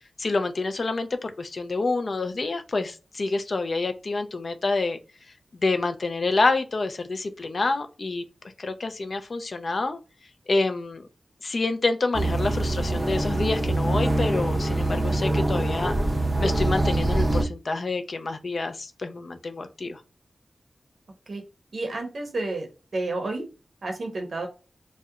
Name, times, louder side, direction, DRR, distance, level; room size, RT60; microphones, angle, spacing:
voice 1, 0.2-5.0 5.6-8.2 8.6-10.0 10.5-11.1 11.4-15.9 16.4-20.0, left 3 dB, 55° left, 8 dB, 0.3 m, -27 dB
sound 1, 12.1-17.4, right 2 dB, 15° right, 0.4 m, -24 dB
voice 2, 21.7-22.7 22.9-23.4 23.8-24.5, right 2 dB, 65° right, 3 dB, 0.6 m, -30 dB
2.4 x 2.0 x 2.7 m, 0.32 s
wide cardioid pair, 105°, 0 cm